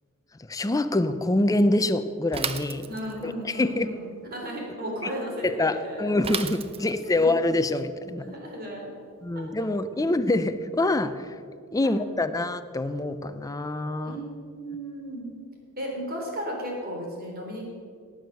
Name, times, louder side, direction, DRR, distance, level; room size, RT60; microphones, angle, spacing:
voice 1, 0.5-2.9 3.2-3.9 5.4-8.3 9.2-11.3 11.7-14.2, left 2 dB, 15° left, 11 dB, 0.5 m, -25 dB
Bicycle / Mechanisms, 2.3-3.3 6.2-7.2, right 6 dB, 25° right, 0.6 m, -33 dB
voice 2, 2.9-6.1 6.8-7.3 8.2-8.9 11.8-12.0 14.0-14.2 14.5-15.4 15.8-17.6, equal, 45° right, -1 dB, 3.3 m, -35 dB
18.0 x 6.4 x 6.5 m, 2.2 s
head